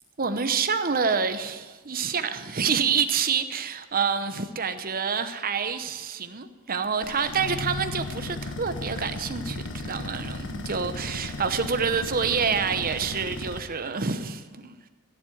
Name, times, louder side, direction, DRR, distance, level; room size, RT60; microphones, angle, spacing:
voice 1, 0.2-14.8, right 6 dB, 40° right, 9 dB, 0.9 m, -27 dB
sound 1, 7.0-13.6, left 2 dB, 55° left, 1.4 m, -35 dB
16.0 x 7.6 x 7.9 m, 1.3 s
head